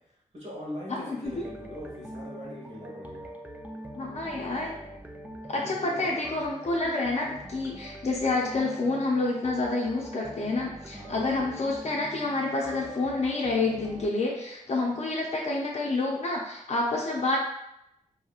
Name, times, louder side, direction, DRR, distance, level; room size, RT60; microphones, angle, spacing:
voice 1, 0.3-3.3 5.5-6.1 10.9-11.4, left 1 dB, 55° right, -6 dB, 1.3 m, -41 dB
voice 2, 0.9-1.4 4.0-4.8 5.5-17.4, left 2 dB, 55° left, -2 dB, 0.5 m, -28 dB
sound 1, 1.3-14.1, equal, 10° right, 0.4 m, -43 dB
2.9 x 2.7 x 2.4 m, 0.80 s
cardioid pair, 70°, 14 cm